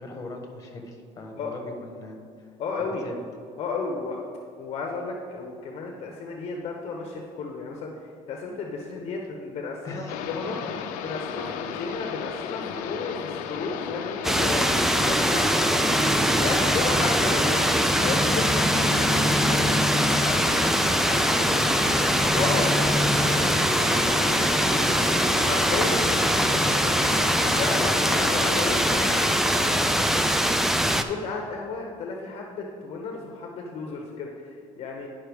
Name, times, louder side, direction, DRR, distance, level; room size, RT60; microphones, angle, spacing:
voice 1, 0.0-2.5 3.0-3.2 9.8-10.3 11.1-11.2 18.7-22.7 23.1-25.1 25.7-26.9, left 2 dB, 25° left, 2 dB, 1.3 m, -39 dB
voice 2, 2.6-3.0 3.6-4.2 4.6-10.6 11.0-16.1 16.4-18.6 22.3-22.8 24.4-25.0 25.5-26.0 27.4-30.4 31.0-35.1, left 4 dB, 50° left, 1 dB, 0.8 m, -33 dB
sound 1, 10.1-29.4, left 8 dB, 80° left, 0.5 m, -34 dB
sound 2, 14.2-31.0, equal, 5° right, 0.3 m, -22 dB
10.5 x 5.4 x 3.4 m, 2.3 s
cardioid pair, 135°, 13 cm